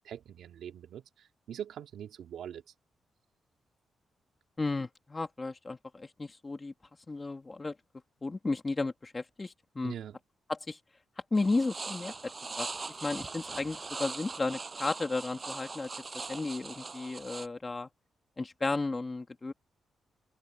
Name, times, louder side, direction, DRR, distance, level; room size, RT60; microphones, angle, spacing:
voice 1, 0.0-2.6 9.8-10.2, right 9 dB, 85° right, 2.5 m, -43 dB
voice 2, 4.6-6.7 7.1-7.7 8.2-9.9 10.5-10.8 11.3-17.9 18.4-19.5, left 3 dB, 25° left, 2.8 m, -34 dB
sound 1, 11.3-17.5, right 4 dB, 30° right, 7.3 m, -41 dB
open air
cardioid pair, 100°, 0 cm